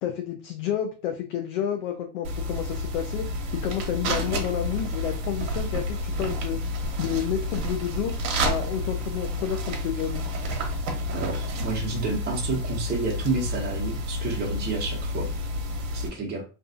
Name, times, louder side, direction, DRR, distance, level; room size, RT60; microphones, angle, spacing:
voice 1, 0.0-3.2 3.5-6.6 7.0-8.1 8.4-10.2, left 10 dB, 80° left, 5 dB, 0.6 m, -30 dB
sound 1, 2.2-16.1, left 1 dB, 60° right, 1.0 m, -30 dB
voice 2, 11.1-15.3 15.9-16.4, right 4 dB, 25° right, -1 dB, 0.9 m, -30 dB
2.4 x 2.4 x 2.4 m, 0.34 s
supercardioid pair, 95°, 36 cm